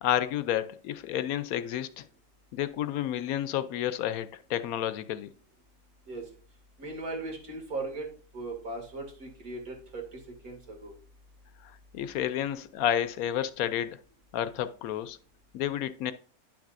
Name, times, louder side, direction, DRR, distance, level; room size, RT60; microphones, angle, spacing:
voice 1, 0.0-2.0 2.5-5.3 11.6-14.0 14.3-15.2 15.5-16.1, left 11 dB, 80° left, 1.0 m, -30 dB
voice 2, 6.8-10.9, right 2 dB, 85° right, 2.7 m, -38 dB
10.0 x 6.0 x 2.5 m
omnidirectional pair, 1.5 m